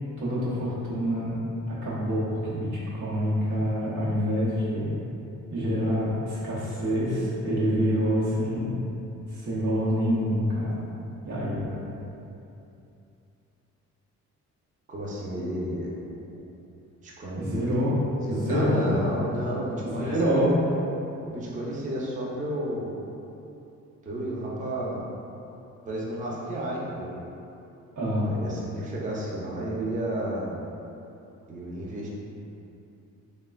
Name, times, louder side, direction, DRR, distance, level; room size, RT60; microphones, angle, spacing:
voice 1, 0.2-1.4 1.7-5.0 5.5-8.7 9.3-10.8 11.2-11.8 17.3-18.0 18.3-19.0 19.8-20.5 28.0-28.3, equal, 90° right, -8 dB, 0.8 m, -26 dB
voice 2, 14.9-15.9 17.0-17.6 18.2-20.5 21.2-23.0 24.1-25.0 25.9-27.1 28.2-30.5 31.5-32.1, right 1 dB, 25° right, -5 dB, 0.5 m, -32 dB
3.1 x 2.1 x 2.2 m, 2.8 s
cardioid pair, 90°, 30 cm